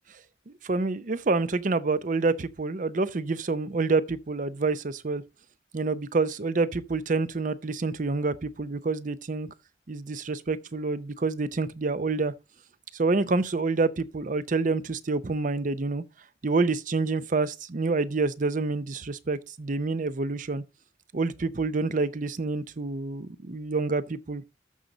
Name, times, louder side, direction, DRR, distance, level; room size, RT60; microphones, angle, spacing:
voice 1, 0.5-5.2 5.7-9.5 9.9-12.3 12.9-16.0 16.4-20.6 21.1-24.4, right 3 dB, 45° right, 0.6 m, -27 dB
13.5 x 5.3 x 3.9 m
head